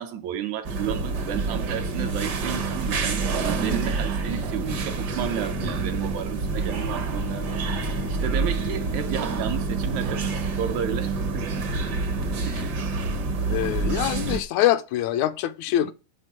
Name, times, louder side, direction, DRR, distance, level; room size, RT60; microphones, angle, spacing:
voice 1, 0.0-11.5 12.5-12.8 15.8-15.9, right 10 dB, 75° right, 2.3 m, -32 dB
sound 1, 0.6-14.4, right 4 dB, 55° right, 1.2 m, -27 dB
Bowed string instrument, 6.5-10.7, left 11 dB, 50° left, 0.5 m, -43 dB
voice 2, 13.5-15.9, left 13 dB, 80° left, 1.9 m, -24 dB
9.9 x 4.4 x 7.4 m
omnidirectional pair, 3.4 m